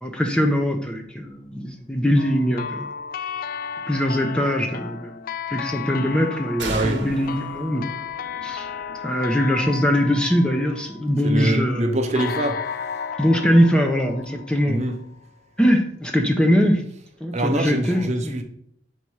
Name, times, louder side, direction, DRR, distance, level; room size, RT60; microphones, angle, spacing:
voice 1, 0.0-2.9 3.9-7.8 8.4-8.7 9.0-11.9 13.2-14.8 15.6-16.8 17.2-18.4, equal, 5° left, 0.6 m, -21 dB
sound 1, 2.2-11.4 12.2-15.0, left 7 dB, 50° left, 0.3 m, -34 dB
sound 2, 6.6-10.1, right 2 dB, 75° right, 1.1 m, -36 dB
voice 2, 6.7-7.0 11.2-12.7 14.6-15.0 17.3-18.4, right 1 dB, 35° right, 0.7 m, -24 dB
6.1 x 4.1 x 4.7 m
head